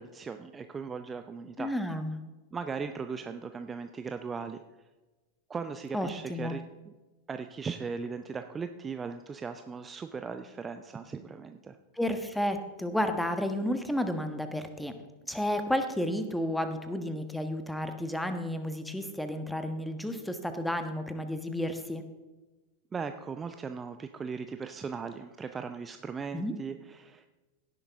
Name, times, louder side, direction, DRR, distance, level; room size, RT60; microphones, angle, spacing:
voice 1, 0.0-1.7 2.5-4.6 5.5-6.9 7.3-11.8 22.9-27.3, right 5 dB, 20° right, 8 dB, 0.6 m, -38 dB
voice 2, 1.6-2.2 5.9-6.6 11.9-14.9 15.3-22.0 26.3-26.5, left 1 dB, 5° left, 8 dB, 1.3 m, -32 dB
17.0 x 10.5 x 3.6 m, 1.2 s
figure-of-eight pair, 90°, 0 cm